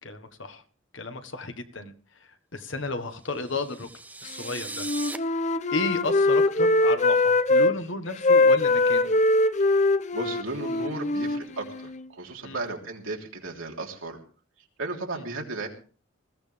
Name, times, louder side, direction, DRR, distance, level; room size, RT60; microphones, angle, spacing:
voice 1, 0.0-0.6 0.9-3.9 4.2-4.9 5.7-9.1 12.4-12.6 15.1-15.2, left 2 dB, 65° left, 8 dB, 1.5 m, -33 dB
sound 1, 3.3-5.2, right 3 dB, 10° right, 0.7 m, -39 dB
Wind instrument woodwind instrument, 4.8-7.7 8.2-12.1, left 2 dB, 35° left, 0.7 m, -22 dB
voice 2, 10.1-14.2 14.8-15.7, right 2 dB, 80° right, 1 dB, 3.4 m, -35 dB
20.5 x 15.0 x 3.5 m, 0.39 s
head